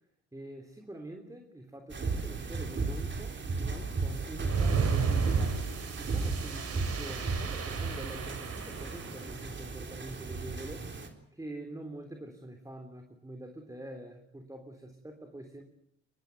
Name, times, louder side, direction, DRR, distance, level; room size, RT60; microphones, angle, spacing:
voice 1, 0.3-5.6 6.0-10.9 11.3-15.6, right 1 dB, 10° right, 4 dB, 3.4 m, -45 dB
sound 1, 1.9-11.1, right 4 dB, 40° right, 3.9 m, -35 dB
sound 2, 4.4-9.3, right 5 dB, 55° right, 4.5 m, -32 dB
23.5 x 21.0 x 9.3 m, 0.72 s
cardioid pair, 90°, 30 cm